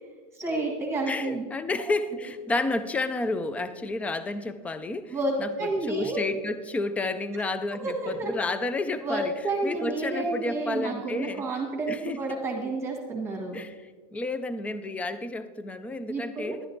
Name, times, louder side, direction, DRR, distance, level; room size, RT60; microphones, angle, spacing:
voice 1, 0.3-1.4 5.1-6.2 7.8-8.3 9.0-13.6 16.1-16.6, right 2 dB, 15° right, -1 dB, 1.6 m, -30 dB
voice 2, 1.1-9.3 9.6-11.4 11.9-12.2 13.5-13.8 14.1-16.6, left 2 dB, 5° left, 12 dB, 0.4 m, -31 dB
11.0 x 9.9 x 3.9 m, 1.4 s
supercardioid pair, 145°, 19 cm